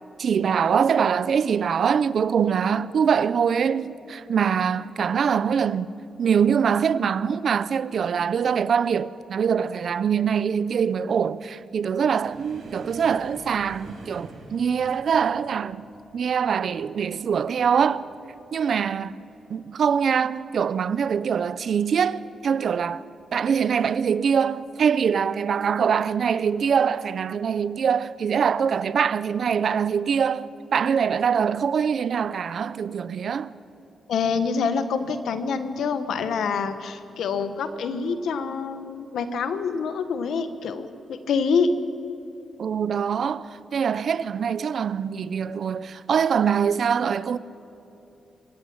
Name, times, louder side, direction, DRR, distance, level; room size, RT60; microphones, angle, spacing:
voice 1, 0.2-5.9 6.2-15.8 16.1-18.0 18.5-19.2 19.5-23.0 23.3-33.5 42.6-47.4, right 7 dB, 50° right, 0.5 m, -23 dB
sound 1, 12.2-19.4 19.7-20.1 20.4-20.6 21.4-22.0 23.0-23.2 24.5-24.7, right 2 dB, 80° right, 5.4 m, -46 dB
voice 2, 34.1-41.7, left 5 dB, 80° left, 1.3 m, -26 dB
24.0 x 14.5 x 8.8 m
wide cardioid pair, 170°, 0 cm